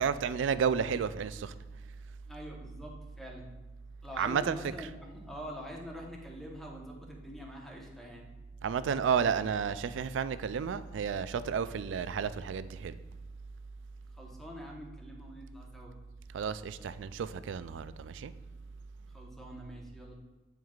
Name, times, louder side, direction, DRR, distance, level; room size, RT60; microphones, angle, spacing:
voice 1, 0.0-1.5 4.2-4.6 8.6-13.0 16.3-18.3, right 7 dB, 85° right, 0.3 m, -31 dB
voice 2, 2.3-3.5 4.0-8.3 14.1-15.9 19.1-20.1, equal, ahead, 1.0 m, -45 dB
9.0 x 4.6 x 2.4 m
head